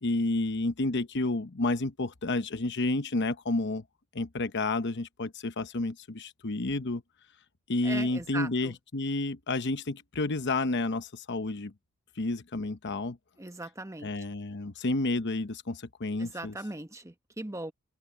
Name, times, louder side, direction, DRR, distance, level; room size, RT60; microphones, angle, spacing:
voice 1, 0.0-3.8 4.1-7.0 7.7-11.7 12.2-13.2 14.0-16.6, left 2 dB, 55° left, 0.9 m, -30 dB
voice 2, 7.8-8.7 13.4-14.1 16.2-17.7, right 2 dB, 15° right, 1.2 m, -39 dB
head